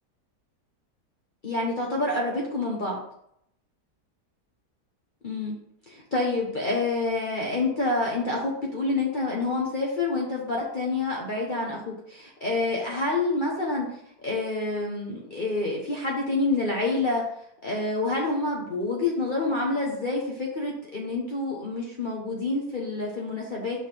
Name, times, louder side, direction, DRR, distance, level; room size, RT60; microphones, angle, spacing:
voice 1, 1.4-3.0 5.2-5.6 5.9-17.2 17.6-23.9, left 2 dB, 35° left, -3 dB, 1.1 m, -28 dB
5.9 x 3.9 x 6.1 m, 0.73 s
omnidirectional pair, 1.7 m